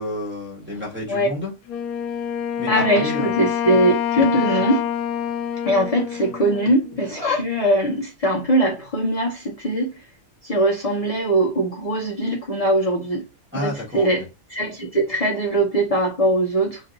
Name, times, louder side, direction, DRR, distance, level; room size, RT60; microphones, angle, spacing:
voice 1, 0.0-1.5 2.6-3.3 13.5-14.1, left 1 dB, 10° right, 1.2 m, -30 dB
Wind instrument woodwind instrument, 1.7-7.1, left 9 dB, 75° left, 1.1 m, -26 dB
voice 2, 2.7-4.9 5.6-10.1 10.4-13.2 13.5-14.2 14.5-16.8, right 1 dB, 40° left, 0.5 m, -21 dB
3.1 x 2.7 x 3.8 m
omnidirectional pair, 1.6 m